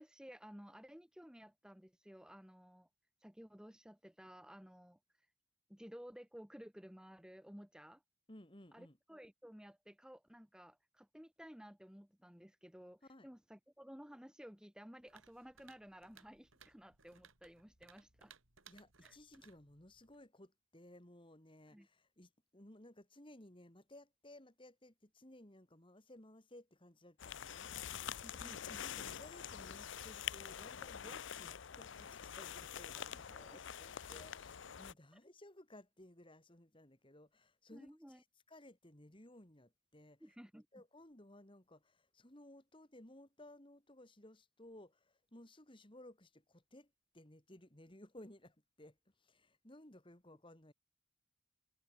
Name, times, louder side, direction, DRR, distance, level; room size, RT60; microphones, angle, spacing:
voice 1, 0.0-2.9 3.2-5.3 5.7-8.0 8.7-18.3 19.0-19.2 21.7-21.9 28.2-29.0 32.9-33.6 37.7-38.2 40.2-40.7, equal, 5° right, 1.4 m, -55 dB
voice 2, 8.3-9.0 13.1-13.3 18.7-27.7 28.0-40.3 40.7-50.7, left 1 dB, 25° left, 2.5 m, -59 dB
sound 1, 15.1-20.3, right 7 dB, 75° right, 5.9 m, -65 dB
sound 2, 27.2-34.9, left 9 dB, 60° left, 0.6 m, -46 dB
head